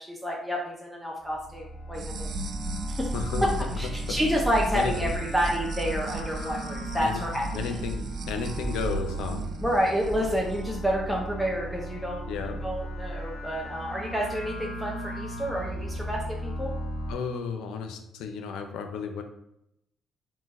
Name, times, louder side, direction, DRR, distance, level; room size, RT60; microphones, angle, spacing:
voice 1, 0.0-2.3 2.9-3.1 3.8-7.8 9.6-16.7, equal, ahead, -3 dB, 0.7 m, -29 dB
sound 1, 1.2-17.1, equal, 65° left, 0.9 m, -36 dB
sound 2, 1.9-10.6, right 2 dB, 60° right, 0.3 m, -36 dB
voice 2, 3.1-3.7 4.1-4.2 4.7-5.1 7.0-7.2 7.5-9.5 12.3-12.7 17.1-19.2, left 5 dB, 90° left, 6 dB, 0.5 m, -33 dB
3.8 x 2.6 x 4.0 m, 0.82 s
cardioid pair, 90°, 0 cm